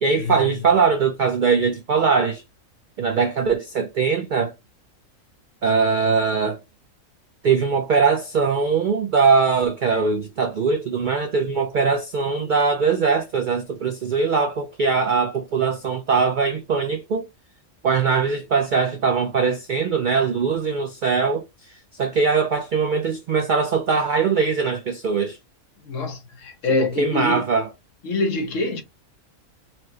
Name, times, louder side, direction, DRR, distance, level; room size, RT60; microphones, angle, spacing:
voice 1, 0.0-2.4 3.0-4.5 5.6-6.6 7.4-17.3 17.8-25.4 26.8-27.7, right 5 dB, 70° right, 0.4 m, -21 dB
voice 2, 25.8-27.5 28.0-28.8, left 3 dB, 70° left, 1.2 m, -25 dB
4.2 x 2.1 x 2.7 m
omnidirectional pair, 1.4 m